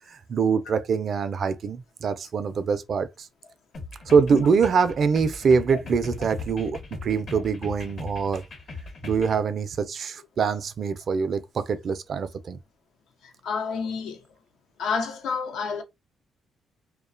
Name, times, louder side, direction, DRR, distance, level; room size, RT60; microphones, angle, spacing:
voice 1, 0.1-3.3 4.1-8.4 9.0-12.6, right 5 dB, 55° right, 0.4 m, -24 dB
sound 1, 3.7-9.4, left 3 dB, 65° left, 1.0 m, -39 dB
voice 2, 13.2-14.2 14.8-15.8, left 5 dB, 80° left, 0.5 m, -29 dB
2.3 x 2.2 x 2.4 m
cardioid pair, 90°, 0 cm